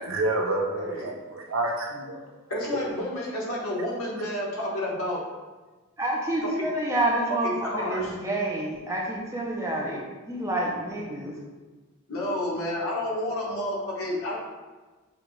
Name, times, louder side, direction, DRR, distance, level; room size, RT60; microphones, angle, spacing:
voice 1, 0.0-2.2, right 2 dB, 70° right, 1 dB, 0.7 m, -28 dB
voice 2, 0.8-1.1 1.9-2.0 2.5-5.2 6.4-6.7 7.4-8.1 12.1-14.4, left 1 dB, 80° left, -4 dB, 1.3 m, -30 dB
voice 3, 6.0-11.4, right 1 dB, 15° right, -3 dB, 0.6 m, -28 dB
6.7 x 2.4 x 3.2 m, 1.3 s
head